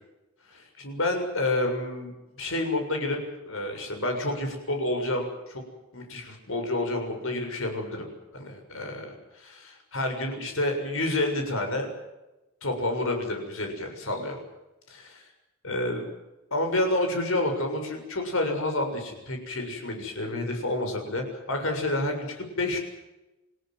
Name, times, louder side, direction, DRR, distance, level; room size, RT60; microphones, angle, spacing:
voice 1, 0.5-2.1 2.4-3.2 3.4-5.6 5.9-11.9 12.6-14.4 14.9-15.3 15.6-16.1 16.5-22.8, left 2 dB, 70° left, 4 dB, 7.0 m, -29 dB
29.0 x 17.0 x 7.8 m, 1.0 s
head